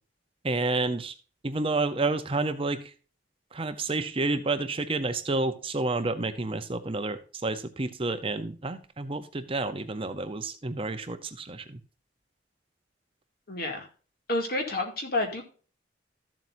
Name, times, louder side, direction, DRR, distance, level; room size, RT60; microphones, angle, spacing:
voice 1, 0.4-1.1 1.4-2.9 3.5-11.8, right 3 dB, 30° right, 10 dB, 0.7 m, -30 dB
voice 2, 13.5-13.9 14.3-15.4, left 2 dB, 50° left, 2 dB, 2.3 m, -29 dB
13.5 x 7.5 x 2.6 m, 0.37 s
head